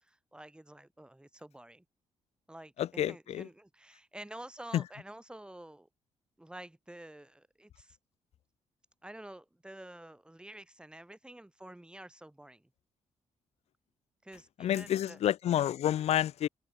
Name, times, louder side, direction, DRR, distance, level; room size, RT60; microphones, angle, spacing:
voice 1, 0.0-1.8 2.5-5.9 6.4-8.0 9.0-12.7 14.2-15.2, right 1 dB, 10° right, 1.0 m, -49 dB
voice 2, 2.8-3.5 4.7-4.8 14.6-16.5, left 11 dB, 65° left, 0.4 m, -29 dB
open air
cardioid pair, 70°, 12 cm